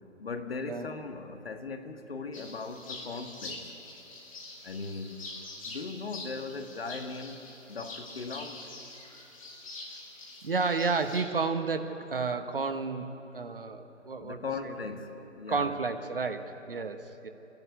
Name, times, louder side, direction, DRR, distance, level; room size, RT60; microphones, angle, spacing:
voice 1, 0.2-3.6 4.6-5.3 5.7-8.7 14.0-15.7, left 4 dB, 50° left, 6 dB, 1.6 m, -39 dB
sound 1, 2.3-11.2, left 2 dB, 25° left, 2.5 m, -45 dB
voice 2, 10.4-14.7 15.5-17.3, right 4 dB, 45° right, 8 dB, 1.1 m, -31 dB
28.5 x 11.0 x 9.5 m, 3.0 s
hypercardioid pair, 170°, 38 cm